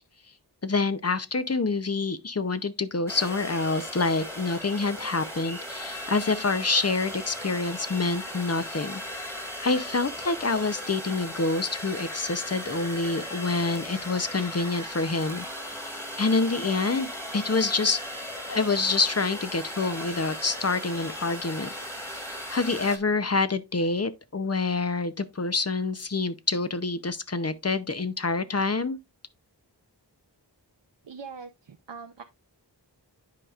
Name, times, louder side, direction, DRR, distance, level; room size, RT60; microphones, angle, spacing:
voice 1, 0.6-15.5 16.2-18.0 18.5-21.7 22.0-29.0, left 3 dB, 35° left, 0.7 m, -27 dB
sound 1, 3.1-23.0, equal, 5° left, 1.8 m, -37 dB
voice 2, 31.0-32.2, right 5 dB, 85° right, 0.7 m, -42 dB
10.5 x 5.0 x 2.4 m
wide cardioid pair, 50°, 42 cm